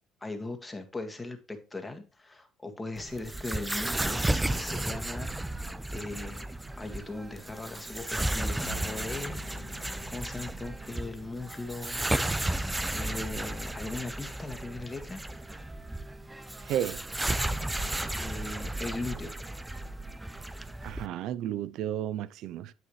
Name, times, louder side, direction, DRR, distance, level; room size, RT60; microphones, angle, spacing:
voice 1, 0.2-15.2 18.2-19.3, left 2 dB, 15° left, 2.0 m, -39 dB
sound 1, 3.0-21.1, right 1 dB, 10° right, 0.6 m, -34 dB
Bowed string instrument, 8.6-15.1, equal, 60° left, 1.8 m, -49 dB
voice 2, 16.6-17.0 20.8-22.7, right 11 dB, 70° right, 0.5 m, -32 dB
9.6 x 8.0 x 3.2 m
supercardioid pair, 90°, 0 cm